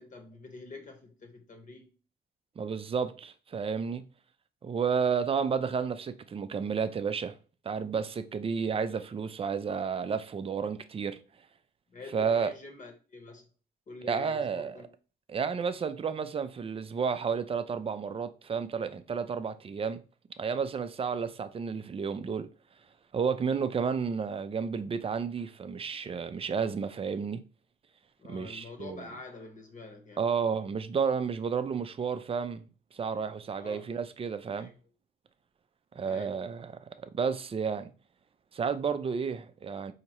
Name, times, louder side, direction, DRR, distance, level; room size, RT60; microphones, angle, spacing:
voice 1, 0.0-1.9 11.9-13.5 13.9-14.9 28.2-30.3 33.5-33.9 34.5-34.7 36.1-36.4, left 3 dB, 40° left, 1.2 m, -46 dB
voice 2, 2.6-4.0 4.6-7.3 7.7-11.2 12.1-12.5 14.0-14.8 15.3-20.0 20.4-22.5 23.1-27.4 28.3-29.0 30.2-32.6 32.9-34.7 36.0-36.9 37.1-37.9 38.5-39.9, right 6 dB, 30° right, 0.4 m, -31 dB
4.3 x 2.8 x 2.9 m
cardioid pair, 90°, 20 cm